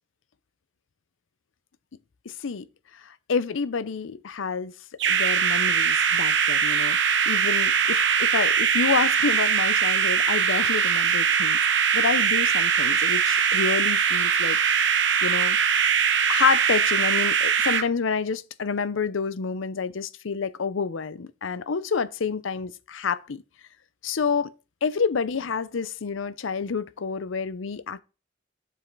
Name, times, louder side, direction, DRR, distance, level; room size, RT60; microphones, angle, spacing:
voice 1, 2.3-2.7 2.9-4.7 5.1-7.0 7.3-11.6 11.9-15.6 16.3-23.4 24.0-24.5 24.8-28.0, left 5 dB, 85° left, 0.6 m, -28 dB
sound 1, 5.0-17.8, right 7 dB, 65° right, 0.8 m, -22 dB
7.4 x 5.5 x 3.9 m
head